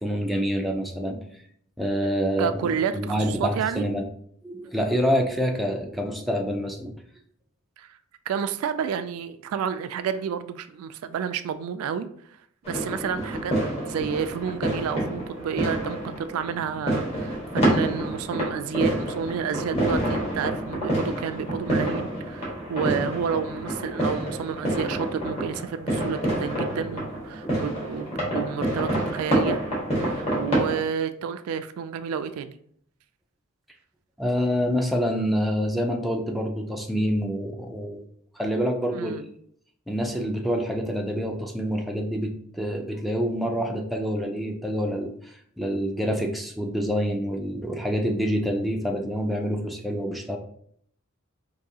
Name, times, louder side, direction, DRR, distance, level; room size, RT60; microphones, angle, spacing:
voice 1, 0.0-1.2 1.8-4.1 4.4-6.9 34.2-38.1 38.3-39.3 39.9-50.4, equal, ahead, 2 dB, 0.4 m, -27 dB
voice 2, 2.4-3.8 7.8-8.0 8.3-12.1 12.7-13.6 13.8-29.6 30.0-32.6 38.9-39.2, right 7 dB, 80° right, 11 dB, 0.3 m, -30 dB
sound 1, 12.6-30.8, right 1 dB, 30° left, 1.5 m, -28 dB
4.7 x 2.6 x 2.7 m, 0.65 s
head